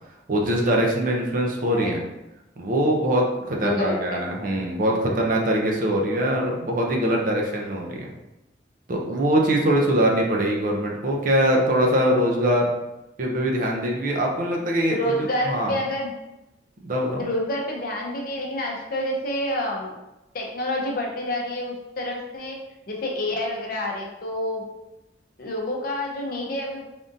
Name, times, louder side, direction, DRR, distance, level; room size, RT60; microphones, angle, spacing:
voice 1, 0.3-2.0 2.6-8.1 8.9-12.7 13.2-15.1 15.5-15.7 16.8-17.2, right 1 dB, 45° right, 0 dB, 0.5 m, -22 dB
voice 2, 3.6-4.2 14.9-16.1 17.2-19.9 20.3-24.6 25.4-26.8, left 1 dB, 50° left, 0 dB, 0.6 m, -28 dB
3.5 x 2.5 x 2.6 m, 0.97 s
head